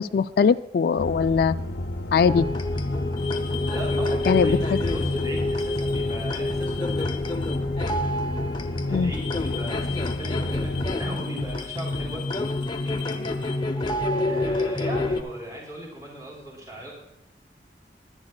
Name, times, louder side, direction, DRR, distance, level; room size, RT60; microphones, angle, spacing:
voice 1, 0.0-1.6 2.1-2.5 4.3-4.8 8.9-9.1, left 6 dB, 60° left, 11 dB, 0.3 m, -21 dB
sound 1, 1.0-10.9, left 1 dB, 85° left, 0.7 m, -32 dB
sound 2, 2.3-15.2, left 2 dB, 25° left, 0.7 m, -27 dB
voice 2, 3.7-7.2 8.9-12.2 12.8-13.3 14.3-16.9, right 1 dB, 20° right, -3 dB, 3.5 m, -38 dB
21.5 x 10.5 x 2.2 m, 0.87 s
head